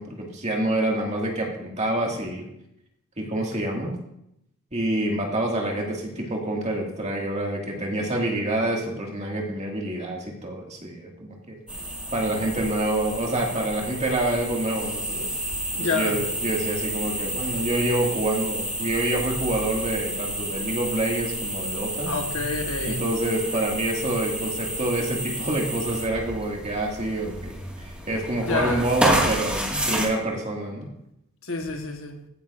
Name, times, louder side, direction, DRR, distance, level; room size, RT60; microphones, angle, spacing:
voice 1, 0.0-2.5 3.2-4.0 4.7-11.6 12.1-15.3 15.8-22.1 22.9-30.9, right 1 dB, 30° right, 1.9 m, -27 dB
sound 1, 11.7-30.1, right 1 dB, 5° right, 1.7 m, -30 dB
voice 2, 15.7-16.2 22.1-23.1 28.5-28.9 31.4-32.3, left 3 dB, 65° left, 1.3 m, -28 dB
15.5 x 8.8 x 2.5 m
head